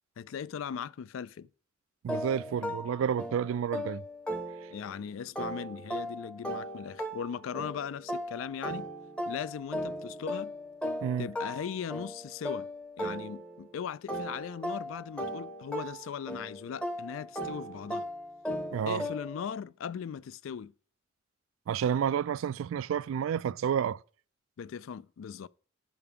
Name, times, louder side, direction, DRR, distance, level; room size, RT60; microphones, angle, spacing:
voice 1, 0.2-1.5 4.7-8.9 9.3-10.5 11.2-12.7 13.0-18.1 18.9-20.7 24.6-25.5, left 7 dB, 85° left, 0.3 m, -39 dB
voice 2, 2.0-4.0 11.0-11.3 18.7-19.1 21.7-24.0, right 8 dB, 90° right, 0.3 m, -30 dB
sound 1, 2.1-5.0 5.4-13.7 14.1-19.5, equal, 5° left, 0.7 m, -37 dB
5.8 x 5.2 x 6.8 m
head